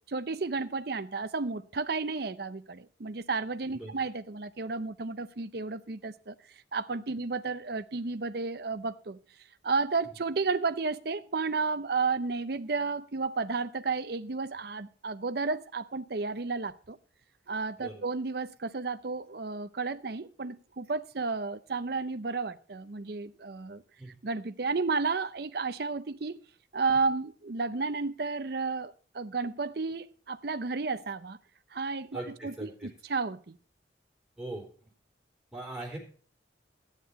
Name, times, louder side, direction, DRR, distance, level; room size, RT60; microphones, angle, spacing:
voice 1, 0.1-6.4 6.7-9.2 9.6-17.0 17.5-23.8 24.2-26.4 26.7-31.4 31.7-33.6, right 4 dB, 55° right, 0.6 m, -32 dB
voice 2, 32.1-32.9 34.4-34.6 35.5-36.0, right 2 dB, 5° right, 4.0 m, -40 dB
12.5 x 9.7 x 4.2 m
head